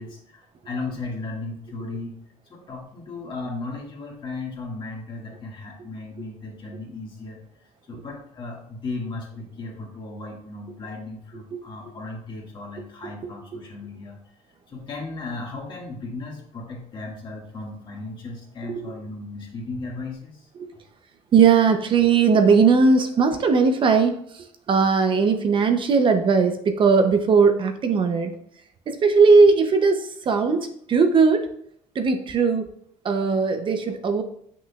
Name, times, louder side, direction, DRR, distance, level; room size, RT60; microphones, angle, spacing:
voice 1, 0.0-2.2 2.4-7.4 7.9-14.2 14.7-20.5, left 3 dB, 35° left, -1 dB, 1.8 m, -36 dB
voice 2, 21.3-28.3 28.9-31.5 31.9-32.7 33.0-34.2, right 5 dB, 40° right, 6 dB, 0.6 m, -19 dB
7.9 x 6.1 x 2.3 m, 0.67 s
cardioid pair, 140°, 13 cm